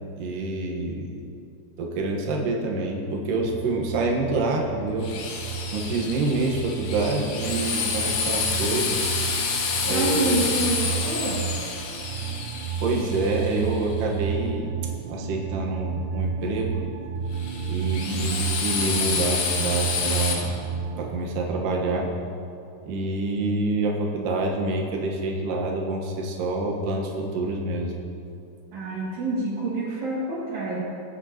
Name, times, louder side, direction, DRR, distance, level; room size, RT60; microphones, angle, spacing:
voice 1, 0.2-1.1 1.8-5.1 5.7-9.2 9.8-10.5 12.8-14.7 15.1-16.8 17.7-20.5 21.0-22.1 22.9-27.9, right 2 dB, 65° right, -1 dB, 2.3 m, -27 dB
sound 1, 3.4-21.2, right 7 dB, 80° right, 2.6 m, -32 dB
Drill, 5.0-13.9 17.3-20.3, left 5 dB, 75° left, 3.7 m, -28 dB
voice 2, 9.9-11.4 17.9-18.4 28.7-30.8, right 2 dB, 45° right, -11 dB, 3.0 m, -28 dB
22.0 x 9.0 x 3.0 m, 2.5 s
omnidirectional pair, 5.5 m